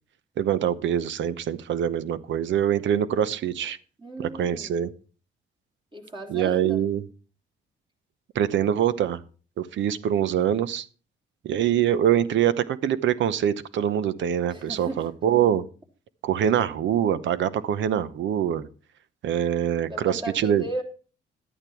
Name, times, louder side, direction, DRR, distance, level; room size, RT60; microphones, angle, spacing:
voice 1, 0.4-3.8 4.2-4.9 6.3-7.0 8.3-9.2 9.6-10.9 11.4-15.6 16.2-18.7 19.2-20.6, right 10 dB, 70° right, 16 dB, 0.9 m, -24 dB
voice 2, 4.0-4.7 5.9-6.8 14.5-15.0 19.9-20.8, right 1 dB, 25° right, 1 dB, 3.1 m, -35 dB
12.0 x 8.9 x 4.5 m, 0.38 s
cardioid pair, 90°, 20 cm